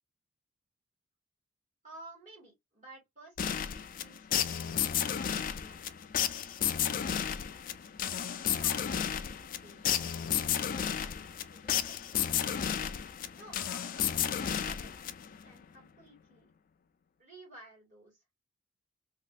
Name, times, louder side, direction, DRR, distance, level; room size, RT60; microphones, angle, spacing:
voice 1, 1.8-5.8 6.6-7.3 8.0-10.0 10.5-12.2 13.3-15.1 15.4-16.5 17.2-18.2, right 2 dB, 40° right, 2.0 m, -55 dB
sound 1, 3.4-15.5, left 9 dB, 40° left, 0.3 m, -32 dB
3.0 x 2.8 x 2.3 m
head